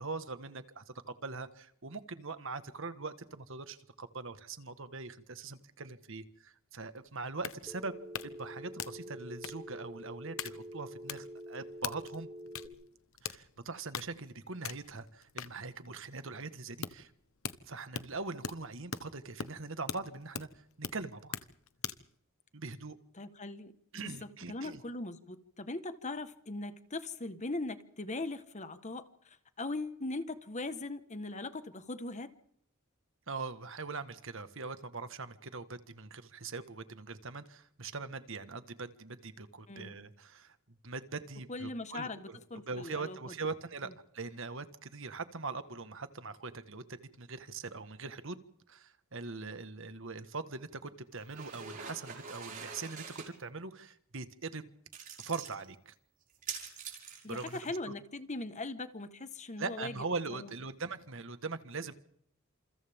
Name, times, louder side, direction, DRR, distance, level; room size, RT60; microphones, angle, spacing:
voice 1, 0.0-7.9 8.2-12.3 13.2-17.1 17.6-21.4 22.5-23.0 23.9-24.8 33.3-40.6 40.8-42.4 42.7-48.4 48.7-53.0 53.4-54.7 55.2-55.9 57.3-57.7 59.6-61.9, right 4 dB, 65° right, 11 dB, 1.6 m, -42 dB
sound 1, 6.9-22.1, left 7 dB, 70° left, 1.1 m, -43 dB
Telephone, 7.7-12.7, equal, 5° right, 2.4 m, -47 dB
voice 2, 23.2-32.3 39.7-39.9 41.5-43.2 57.2-60.0 60.3-60.5, left 2 dB, 35° left, 10 dB, 1.5 m, -40 dB
sound 2, 51.1-53.3 54.9-55.5 56.3-57.7, right 6 dB, 40° right, 5.9 m, -45 dB
29.5 x 28.0 x 3.7 m, 0.69 s
head